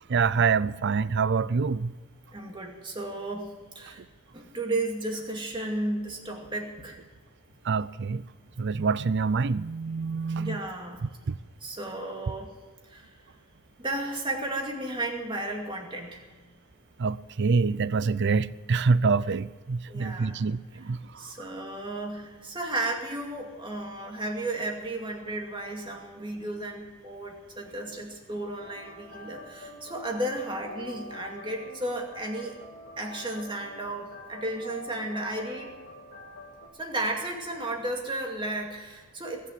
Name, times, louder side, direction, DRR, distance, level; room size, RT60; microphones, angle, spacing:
voice 1, 0.1-1.9 7.7-8.2 8.6-10.6 11.3-11.4 17.0-21.0, right 4 dB, 50° right, 0.4 m, -26 dB
voice 2, 2.3-4.0 4.3-7.0 10.4-11.0 11.6-12.5 12.9-13.1 13.8-16.2 19.9-20.4 21.2-32.6 33.0-35.7 36.8-39.5, right 1 dB, 20° right, 2.3 m, -34 dB
sound 1, 28.5-36.7, left 1 dB, 50° left, 2.1 m, -45 dB
21.0 x 7.1 x 9.3 m
head